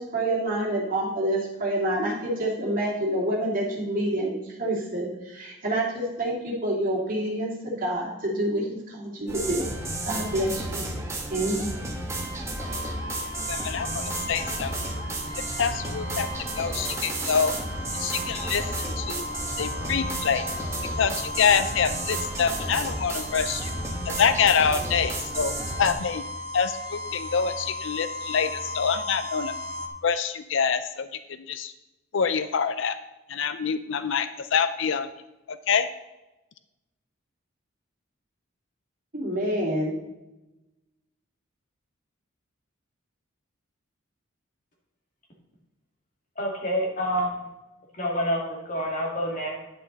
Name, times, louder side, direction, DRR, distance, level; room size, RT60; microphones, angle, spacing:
voice 1, 0.0-9.7 10.0-10.9 11.3-11.7 39.1-39.9, right 1 dB, 40° right, -3 dB, 2.6 m, -27 dB
sound 1, 9.3-25.9, right 2 dB, 15° right, 1.3 m, -32 dB
sound 2, 12.6-29.9, left 1 dB, 75° right, 1.9 m, -37 dB
voice 2, 13.2-14.7 15.6-16.3 16.6-17.5 17.9-19.3 19.6-20.4 21.0-23.7 24.1-26.2 26.5-29.6 30.0-31.7 32.1-33.0 33.3-35.1 35.5-35.9, left 6 dB, 65° left, 12 dB, 0.5 m, -26 dB
voice 3, 46.4-47.3 48.0-48.4 48.7-49.6, equal, 40° left, -2 dB, 2.4 m, -27 dB
10.0 x 8.7 x 4.0 m, 1.0 s
head